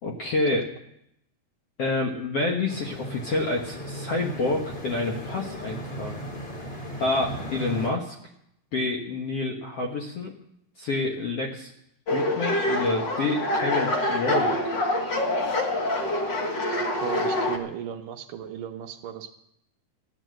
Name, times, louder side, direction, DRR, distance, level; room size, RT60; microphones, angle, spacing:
voice 1, 0.0-0.7 1.8-6.2 7.0-8.1 8.7-10.3 10.8-11.7 12.1-14.7, left 2 dB, 60° left, 0 dB, 1.6 m, -28 dB
sound 1, 2.7-7.9, equal, 25° left, 4.3 m, -37 dB
sound 2, 12.1-17.6, left 1 dB, 90° left, 0.9 m, -26 dB
voice 2, 17.0-19.3, right 9 dB, 75° right, 5 dB, 2.2 m, -36 dB
15.0 x 10.0 x 7.7 m, 0.77 s
omnidirectional pair, 4.5 m